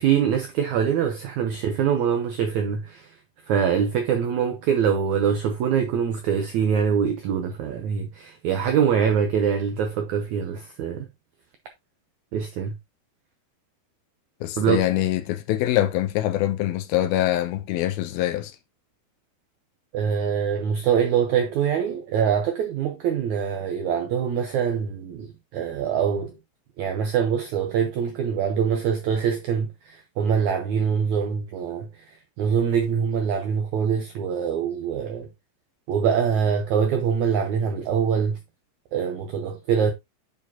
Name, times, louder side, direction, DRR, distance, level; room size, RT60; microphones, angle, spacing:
voice 1, 0.0-3.1 3.5-11.1 12.3-12.7 14.6-14.8 19.9-26.4 26.8-32.0 32.4-35.3 35.9-38.4 38.9-39.9, right 7 dB, 80° right, 1.7 m, -24 dB
voice 2, 14.4-18.6, left 13 dB, 80° left, 2.5 m, -24 dB
8.4 x 4.8 x 2.8 m
omnidirectional pair, 4.4 m